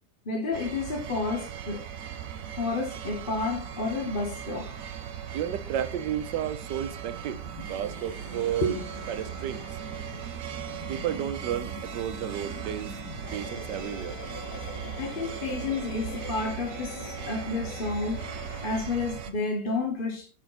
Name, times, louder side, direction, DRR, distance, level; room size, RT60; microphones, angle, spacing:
voice 1, 0.3-1.9 2.6-4.9 8.6-8.8 9.2-9.3 15.0-18.3 18.6-20.3, left 3 dB, 35° left, 1.1 m, -30 dB
sound 1, 0.5-19.3, right 9 dB, 55° right, 1.2 m, -38 dB
voice 2, 5.3-7.4 7.7-8.7 9.1-9.8 10.9-13.0 13.3-14.2, right 10 dB, 85° right, 1.4 m, -32 dB
sound 2, 7.4-18.8, left 5 dB, 75° left, 1.6 m, -44 dB
9.5 x 5.1 x 4.0 m
omnidirectional pair, 1.8 m